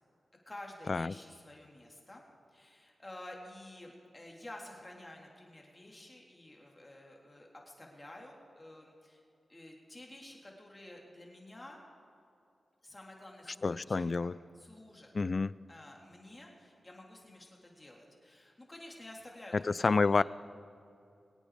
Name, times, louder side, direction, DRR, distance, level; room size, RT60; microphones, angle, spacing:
voice 1, 0.5-2.2 2.5-9.2 9.5-11.8 12.8-15.1 15.7-20.2, left 1 dB, 30° left, 0 dB, 3.4 m, -51 dB
voice 2, 13.6-14.4 15.1-15.6 19.5-20.2, left 4 dB, 50° left, 19 dB, 0.3 m, -29 dB
23.5 x 8.6 x 5.1 m, 2.6 s
cardioid pair, 40°, 0 cm